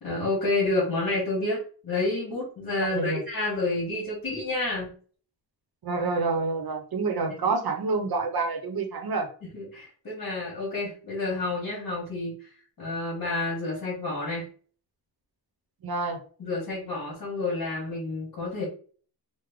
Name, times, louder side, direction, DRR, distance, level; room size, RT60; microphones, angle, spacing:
voice 1, 0.0-4.9 9.5-14.5 16.4-18.6, left 2 dB, 55° left, -6 dB, 1.3 m, -29 dB
voice 2, 2.9-3.2 5.8-9.3 15.8-16.2, right 4 dB, 65° right, 4 dB, 0.7 m, -28 dB
3.3 x 2.1 x 3.5 m, 0.42 s
wide cardioid pair, 170°, 40 cm